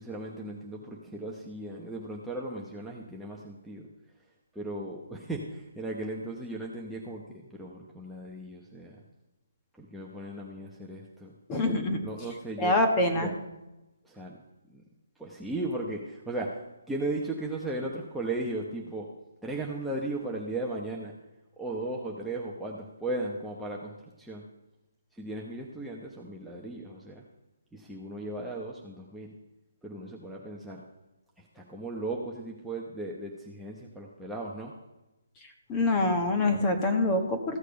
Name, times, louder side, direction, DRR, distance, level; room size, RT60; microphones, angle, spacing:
voice 1, 0.0-3.9 4.5-9.0 9.8-11.3 12.0-12.8 13.1-13.3 14.0-14.4 14.7-14.8 15.2-19.1 19.4-21.1 21.6-24.4 25.1-27.2 27.7-29.3 29.8-30.8 31.4-34.7, right 2 dB, 5° right, -4 dB, 0.9 m, -36 dB
voice 2, 11.5-12.0 12.6-13.3 35.7-37.6, left 2 dB, 20° left, 5 dB, 1.5 m, -25 dB
15.0 x 6.5 x 5.2 m, 1.0 s
figure-of-eight pair, 150°, 0 cm